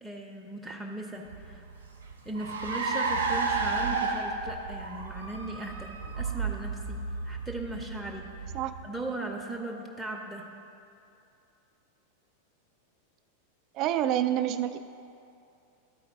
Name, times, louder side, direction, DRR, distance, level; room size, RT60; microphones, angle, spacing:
voice 1, 0.0-1.6 2.2-7.0 7.2-8.6 8.8-10.5, right 2 dB, 5° left, 1 dB, 0.6 m, -38 dB
Car, 1.3-9.1, right 4 dB, 70° right, 0.6 m, -32 dB
voice 2, 13.7-14.8, right 11 dB, 40° right, 10 dB, 0.3 m, -27 dB
12.0 x 4.4 x 3.8 m, 2.7 s
figure-of-eight pair, 90°, 0 cm